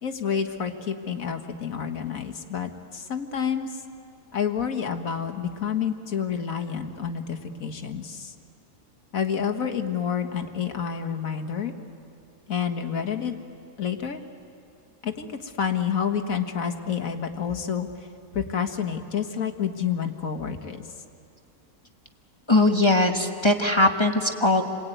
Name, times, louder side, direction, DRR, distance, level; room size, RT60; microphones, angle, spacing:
voice 1, 0.0-3.8 4.3-8.3 9.1-11.7 12.5-13.4 13.8-14.2 15.0-17.9 18.3-20.8, left 7 dB, 65° left, 6 dB, 1.9 m, -29 dB
voice 2, 22.5-24.6, left 2 dB, 20° left, 4 dB, 1.2 m, -20 dB
29.0 x 21.5 x 9.3 m, 2.5 s
omnidirectional pair, 1.6 m